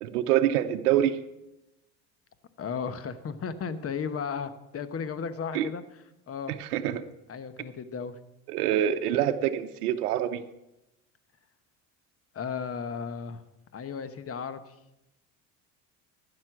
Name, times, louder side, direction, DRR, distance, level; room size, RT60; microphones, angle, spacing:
voice 1, 0.0-1.2 5.5-5.7 6.5-7.0 8.5-10.4, right 11 dB, 85° right, 8 dB, 0.8 m, -26 dB
voice 2, 2.6-5.8 6.3-6.6 7.3-8.1 12.3-13.4 13.7-14.7, left 6 dB, 30° left, 12 dB, 1.1 m, -34 dB
12.0 x 9.8 x 6.0 m, 0.90 s
hypercardioid pair, 80°, 44 cm